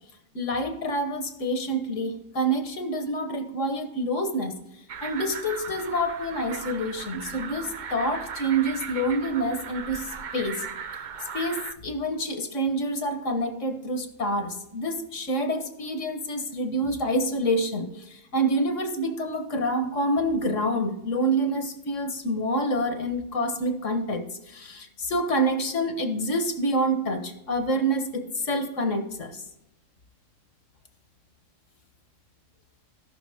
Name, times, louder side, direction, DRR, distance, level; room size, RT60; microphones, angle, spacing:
voice 1, 0.4-4.5 5.0-10.1 10.3-10.6 11.3-17.9 18.3-24.2 24.5-29.3, right 1 dB, 70° left, 7 dB, 1.6 m, -27 dB
sound 1, 4.9-11.7, right 6 dB, 50° right, 0.6 m, -37 dB
18.0 x 6.1 x 3.5 m, 0.87 s
omnidirectional pair, 1.3 m